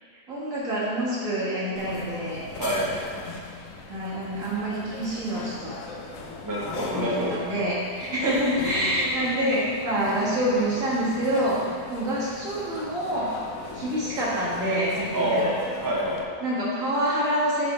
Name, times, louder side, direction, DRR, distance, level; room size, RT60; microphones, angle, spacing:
voice 1, 0.3-2.5 3.9-5.8 6.9-13.3 13.7-15.5 16.4-17.7, right 1 dB, 55° right, -8 dB, 2.0 m, -26 dB
sound 1, 1.8-16.2, left 4 dB, 70° left, 1.0 m, -40 dB
voice 2, 6.4-7.3 8.2-8.3 15.1-16.2, equal, 20° right, -5 dB, 0.6 m, -26 dB
5.9 x 5.2 x 4.1 m, 2.2 s
omnidirectional pair, 1.6 m